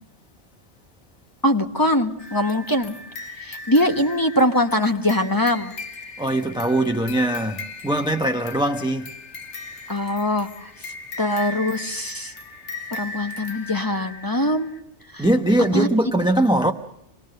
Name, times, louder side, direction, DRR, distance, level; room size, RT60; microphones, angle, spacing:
voice 1, 1.4-2.9 3.4-5.7 9.9-12.3 12.9-14.7 15.1-15.3 15.7-15.9, left 1 dB, 20° left, 1.2 m, -22 dB
sound 1, 2.2-14.8, left 3 dB, 75° left, 1.8 m, -38 dB
voice 2, 6.2-9.1 15.2-16.7, right 1 dB, 5° right, 0.8 m, -21 dB
25.0 x 19.5 x 6.6 m
omnidirectional pair, 1.2 m